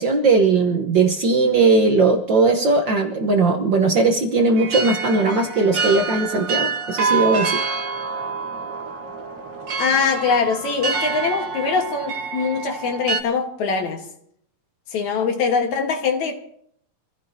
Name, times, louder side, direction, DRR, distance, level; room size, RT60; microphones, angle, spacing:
voice 1, 0.0-7.6, right 3 dB, 70° right, 1.0 m, -18 dB
sound 1, 4.6-13.2, right 4 dB, 50° right, 1.4 m, -27 dB
voice 2, 9.8-14.0 14.9-16.4, left 5 dB, 65° left, 2.7 m, -22 dB
26.0 x 15.5 x 2.8 m
omnidirectional pair, 3.7 m